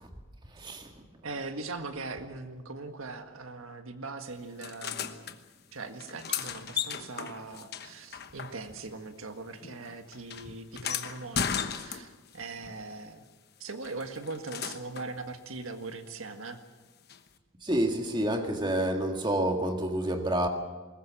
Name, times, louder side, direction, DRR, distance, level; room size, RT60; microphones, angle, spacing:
voice 1, 0.6-0.9 17.6-20.5, right 1 dB, 20° right, 1.9 m, -28 dB
voice 2, 1.2-5.4 5.7-13.3 13.6-16.6, right 3 dB, 80° right, 1.7 m, -40 dB
sound 1, 4.6-5.4 6.0-8.9 9.2-12.4 13.8-15.1 17.1-17.2, left 7 dB, 50° left, 1.1 m, -36 dB
21.5 x 19.5 x 7.5 m
head